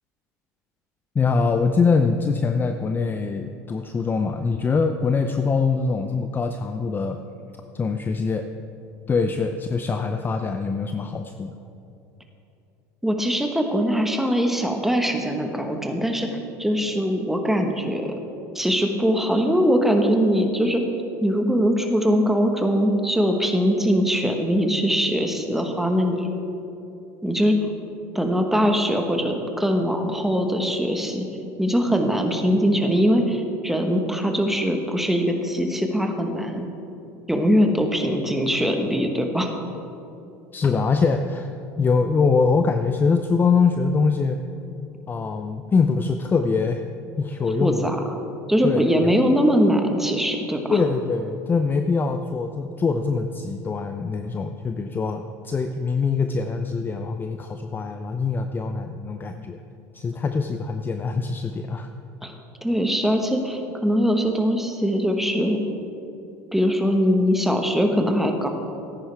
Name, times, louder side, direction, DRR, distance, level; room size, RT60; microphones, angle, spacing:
voice 1, 1.1-7.2 7.7-8.5 9.1-11.5 40.5-41.5 41.8-44.4 45.1-46.8 47.2-47.9 48.6-49.1 50.7-59.6 59.9-61.9, left 4 dB, 25° left, 7 dB, 0.5 m, -23 dB
voice 2, 13.0-18.1 18.5-20.8 21.2-26.3 27.2-27.7 28.1-31.3 31.6-36.7 37.3-39.5 47.6-48.0 48.5-50.8 62.2-62.3 62.6-65.6 66.5-68.5, equal, 5° right, 4 dB, 1.3 m, -22 dB
14.0 x 10.0 x 3.5 m, 2.8 s
hypercardioid pair, 90°, 8 cm